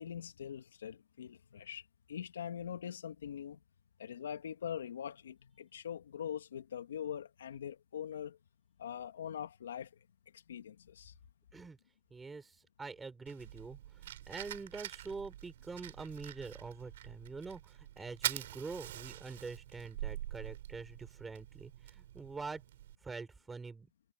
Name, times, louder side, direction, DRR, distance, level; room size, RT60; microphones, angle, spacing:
voice 1, 0.0-3.6 4.0-8.4 8.8-10.1 10.3-11.1, left 9 dB, 85° left, 2.3 m, -43 dB
voice 2, 12.1-22.6 23.0-23.9, right 4 dB, 10° right, 6.5 m, -45 dB
Fire, 13.3-22.9, right 13 dB, 60° right, 5.8 m, -45 dB
hypercardioid pair, 160°, 0 cm